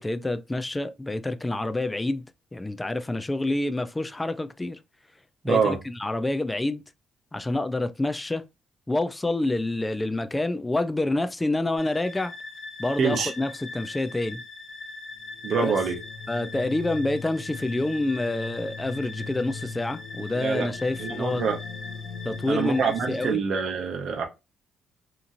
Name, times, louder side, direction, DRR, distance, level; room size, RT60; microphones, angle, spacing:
voice 1, 0.0-2.2 2.5-4.8 5.4-6.8 7.3-8.4 8.9-12.3 12.8-14.4 15.6-15.7 16.3-21.4 22.2-23.4, left 2 dB, 15° left, 0.4 m, -27 dB
voice 2, 5.4-5.8 13.0-13.3 15.4-16.0 20.3-20.7 21.0-21.6 22.5-24.3, right 5 dB, 60° right, 0.7 m, -25 dB
sound 1, 11.8-23.3, left 4 dB, 55° left, 0.8 m, -38 dB
2.9 x 2.5 x 2.5 m
cardioid pair, 90°, 0 cm